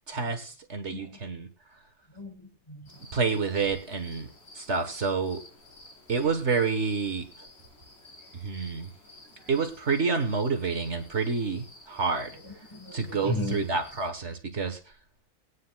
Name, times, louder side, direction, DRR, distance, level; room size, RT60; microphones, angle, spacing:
voice 1, 0.1-1.5 3.1-4.3 4.5-5.4 6.1-7.5 8.3-8.9 9.5-12.4 12.9-14.9, right 4 dB, 50° right, 1.5 m, -28 dB
voice 2, 0.9-1.2 2.1-3.4 8.2-8.6 9.3-9.5 12.3-13.6, equal, 20° left, 1.3 m, -37 dB
sound 1, 2.9-14.1, left 1 dB, 75° left, 3.7 m, -52 dB
19.0 x 9.9 x 2.3 m
omnidirectional pair, 1.6 m